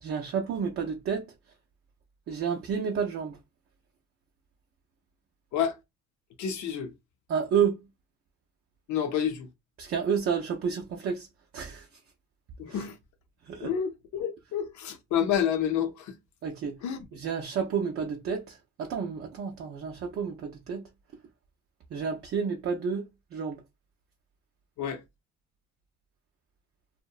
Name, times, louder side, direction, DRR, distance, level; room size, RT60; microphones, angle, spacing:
voice 1, 0.0-1.3 2.3-3.4 7.3-7.8 9.8-11.3 11.5-11.9 12.7-12.8 13.5-13.7 16.4-16.8 17.1-20.8 21.9-23.0 23.3-23.6, right 6 dB, 50° right, 0.5 m, -30 dB
voice 2, 6.4-6.9 8.9-9.5 12.6-13.0 13.6-16.2 16.8-17.0 24.8-25.0, left 8 dB, 75° left, 0.6 m, -29 dB
2.7 x 2.1 x 2.3 m
cardioid pair, 125°, 29 cm